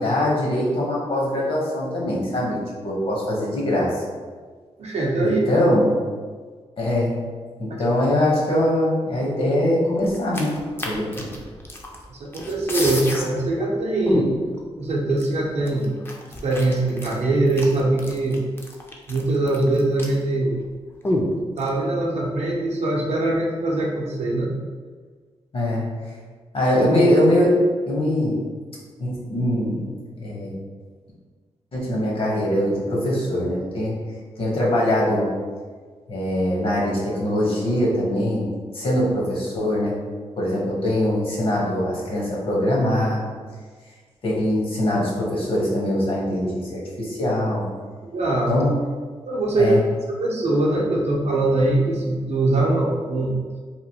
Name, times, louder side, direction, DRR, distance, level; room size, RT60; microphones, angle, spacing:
voice 1, 0.0-4.0 5.2-5.9 6.8-7.2 7.6-10.5 10.8-11.2 25.5-25.8 26.5-28.4 29.0-29.9 30.2-30.5 31.7-33.9 34.4-35.3 36.1-38.5 38.7-39.9 40.4-43.2 44.2-47.6 48.5-48.8 49.6-49.8, left 1 dB, 55° left, -4 dB, 0.8 m, -22 dB
voice 2, 4.8-5.4 12.1-14.3 14.8-16.0 16.2-18.4 19.1-20.6 21.6-24.5 48.0-48.6 49.3-49.7 50.1-53.5, right 2 dB, 70° right, -2 dB, 0.6 m, -22 dB
sound 1, 10.0-12.0 12.3-13.2 13.6-13.7 14.1-14.6 15.2-15.3 15.6-20.3 20.5-20.7 21.0-21.7, left 1 dB, 20° left, 0.4 m, -28 dB
3.0 x 2.4 x 2.7 m, 1.5 s
wide cardioid pair, 125°, 11 cm